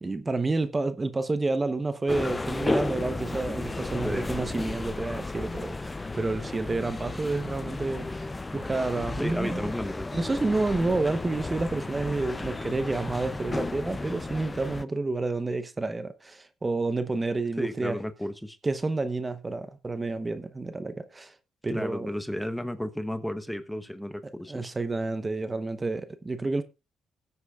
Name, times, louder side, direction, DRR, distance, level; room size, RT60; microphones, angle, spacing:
voice 1, 0.0-9.7 10.1-18.0 18.6-21.3 21.6-22.1 24.5-26.6, right 3 dB, 25° right, 0.9 m, -29 dB
sound 1, 2.1-14.8, left 2 dB, 20° left, 0.5 m, -33 dB
voice 2, 9.2-10.1 17.6-18.6 21.7-24.7, left 1 dB, 5° left, 1.0 m, -33 dB
20.0 x 8.2 x 2.4 m
cardioid pair, 90°, 0 cm